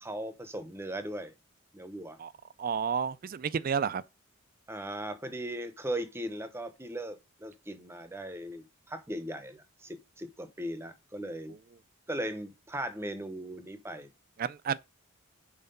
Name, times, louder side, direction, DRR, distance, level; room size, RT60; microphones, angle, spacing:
voice 1, 0.0-1.3 1.7-2.2 4.7-11.5 12.1-14.1, right 1 dB, 10° right, 0.7 m, -38 dB
voice 2, 2.6-4.0 14.4-14.8, right 6 dB, 40° right, 0.3 m, -30 dB
5.7 x 4.6 x 5.4 m
head